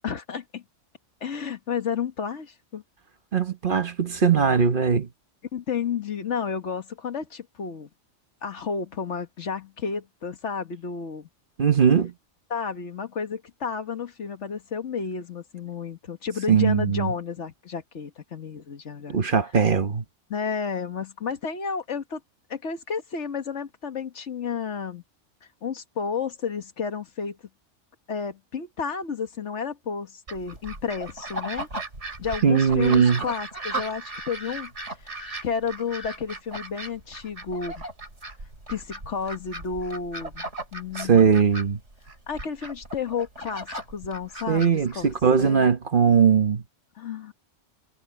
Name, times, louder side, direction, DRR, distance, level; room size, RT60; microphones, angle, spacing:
voice 1, 0.0-0.6 1.2-2.8 5.5-7.9 8.4-11.3 12.5-19.2 20.3-22.2 22.5-25.0 25.6-27.4 28.1-31.7 32.2-34.7 35.0-37.8 38.7-40.4 40.7-41.4 42.3-45.1 45.4-45.7 47.0-47.3, left 6 dB, 70° left, 1.7 m, -31 dB
voice 2, 3.3-5.1 11.6-12.1 16.5-17.1 19.1-20.0 32.4-33.2 41.0-41.8 44.5-46.6, right 6 dB, 45° right, 1.1 m, -20 dB
sound 1, 30.3-45.5, right 2 dB, 70° right, 5.7 m, -37 dB
omnidirectional pair, 1.3 m